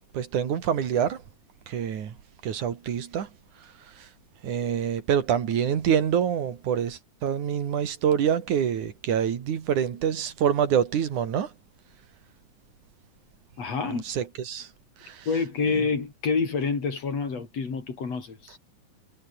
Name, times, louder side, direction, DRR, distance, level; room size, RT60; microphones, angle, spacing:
voice 1, 0.1-1.2 1.7-2.2 2.4-3.3 3.6-4.1 4.4-11.5 13.8-14.7 15.0-15.3 15.6-15.9, right 8 dB, 60° right, 3.4 m, -26 dB
voice 2, 13.6-14.0 15.3-18.6, left 5 dB, 45° left, 5.2 m, -28 dB
omnidirectional pair, 4.1 m